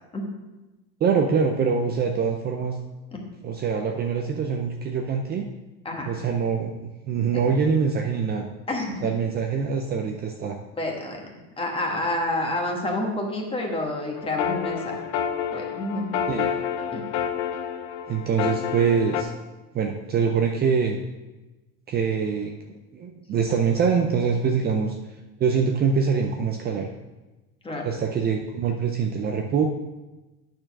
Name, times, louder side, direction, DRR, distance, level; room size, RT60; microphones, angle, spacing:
voice 1, 1.0-2.8 3.4-5.5 6.1-8.5 9.0-10.6 16.3-16.5 18.1-19.3 19.7-21.0 21.9-22.5 22.9-24.9 25.4-26.9 27.8-29.6, right 6 dB, 30° right, 3 dB, 0.5 m, -24 dB
voice 2, 8.7-9.1 10.7-11.3 11.6-15.0 15.5-16.2 16.9-17.0 27.6-27.9, left 1 dB, 15° left, 0 dB, 1.4 m, -29 dB
sound 1, 14.2-19.2, left 8 dB, 80° left, 0.9 m, -29 dB
8.9 x 4.4 x 5.9 m, 1.1 s
cardioid pair, 140°, 34 cm